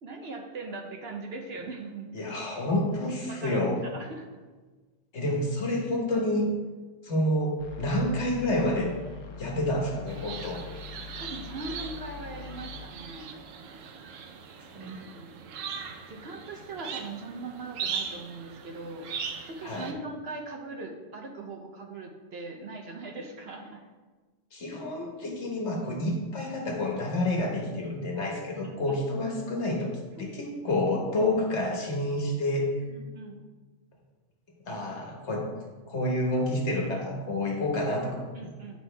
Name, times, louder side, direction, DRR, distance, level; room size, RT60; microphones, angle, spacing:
voice 1, 0.0-2.4 3.3-4.3 11.0-13.4 14.8-15.4 16.1-19.1 19.5-23.8 28.4-29.3 30.2-30.3 30.6-30.7 32.9-33.4 38.3-38.8, right 3 dB, 60° right, 3 dB, 0.9 m, -40 dB
voice 2, 2.1-3.8 5.1-6.5 7.0-8.9 9.4-10.6 14.7-15.0 19.6-19.9 24.5-29.9 30.2-32.7 34.7-35.5 35.9-38.5, left 1 dB, 60° left, 0 dB, 1.5 m, -29 dB
sound 1, 7.6-12.9, left 6 dB, 85° left, 1.2 m, -43 dB
sound 2, 10.1-19.9, right 6 dB, 85° right, 1.0 m, -39 dB
8.8 x 5.3 x 3.3 m, 1.3 s
omnidirectional pair, 1.3 m